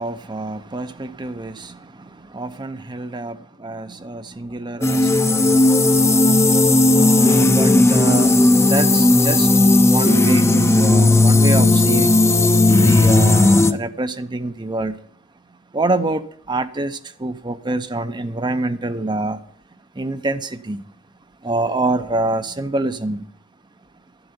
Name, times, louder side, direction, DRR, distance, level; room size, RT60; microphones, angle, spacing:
voice 1, 0.0-5.7 6.9-9.5 9.8-12.2 12.8-15.0 15.7-19.4 19.9-20.8 21.4-23.3, right 2 dB, 25° right, 0.6 m, -26 dB
sound 1, 4.8-13.7, left 2 dB, 15° left, 0.7 m, -14 dB
11.5 x 7.9 x 9.6 m
head